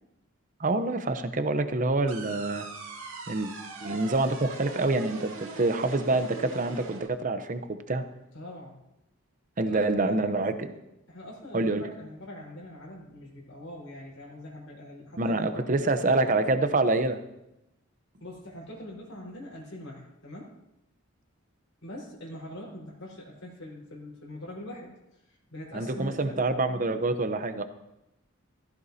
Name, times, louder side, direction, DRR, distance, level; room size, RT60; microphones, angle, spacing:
voice 1, 0.6-2.7 3.3-3.5 3.8-8.0 9.6-10.8 11.5-11.9 15.2-17.2 25.7-27.6, right 2 dB, 40° right, 9 dB, 0.7 m, -26 dB
sound 1, 2.1-7.1, right 3 dB, 70° right, 2.4 m, -41 dB
voice 2, 8.3-8.8 9.6-10.5 11.1-16.2 18.2-20.5 21.8-24.9 25.5-26.4, left 1 dB, 85° left, -4 dB, 4.6 m, -43 dB
15.0 x 15.0 x 2.8 m, 0.89 s
head